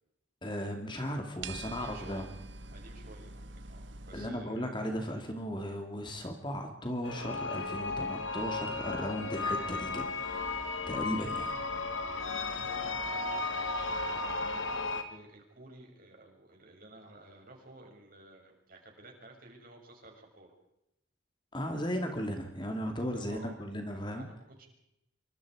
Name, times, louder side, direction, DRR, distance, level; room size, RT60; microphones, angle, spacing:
voice 1, 0.4-2.3 4.1-10.6 10.9-11.6 21.5-24.3, equal, 25° left, 4 dB, 2.4 m, -36 dB
sound 1, 1.4-4.3, right 3 dB, 65° right, 1.3 m, -45 dB
voice 2, 1.5-2.3 2.7-5.0 11.6-20.5 23.1-23.6 24.2-24.7, right 2 dB, 45° right, 1 dB, 6.8 m, -53 dB
sound 2, 7.0-15.0, left 3 dB, 75° left, 2.5 m, -34 dB
26.5 x 25.0 x 4.9 m, 0.85 s
head